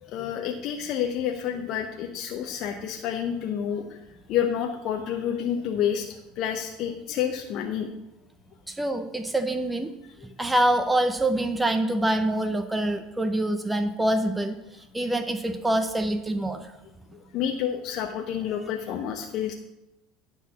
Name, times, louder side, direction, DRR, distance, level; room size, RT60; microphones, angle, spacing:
voice 1, 0.0-4.0 4.3-6.1 6.4-7.9 17.3-19.5, left 9 dB, 60° left, 3 dB, 0.8 m, -29 dB
voice 2, 8.7-9.9 10.4-14.6 14.9-16.7, right 1 dB, 10° right, 7 dB, 0.7 m, -25 dB
10.0 x 4.0 x 7.2 m, 0.93 s
supercardioid pair, 100°, 0 cm